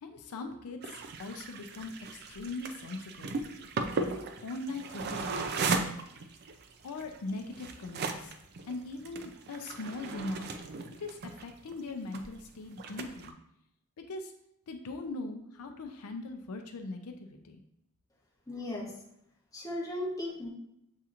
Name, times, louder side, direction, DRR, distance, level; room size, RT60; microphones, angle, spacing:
voice 1, 0.0-3.4 3.9-4.1 4.4-5.6 6.8-8.3 8.7-10.5 11.0-13.4 14.0-14.3 14.7-17.6, left 2 dB, 80° left, 5 dB, 0.5 m, -40 dB
sound 1, 0.8-12.4 12.7-13.3, right 4 dB, 45° right, 0.4 m, -37 dB
voice 2, 18.5-18.9 19.5-20.5, left 1 dB, 15° left, -4 dB, 0.9 m, -36 dB
7.2 x 2.8 x 2.5 m, 0.77 s
head